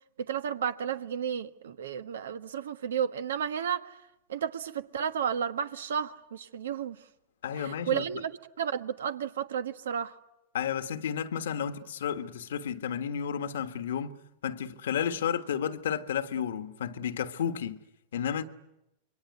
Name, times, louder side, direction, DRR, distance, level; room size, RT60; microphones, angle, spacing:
voice 1, 0.2-4.0 4.3-7.0 7.5-8.3 8.6-10.1, right 8 dB, 80° right, 1.4 m, -32 dB
voice 2, 7.4-8.0 10.5-14.1 14.4-17.8 18.1-18.4, left 8 dB, 75° left, 1.5 m, -32 dB
27.0 x 22.5 x 9.6 m
hypercardioid pair, 105°, 0 cm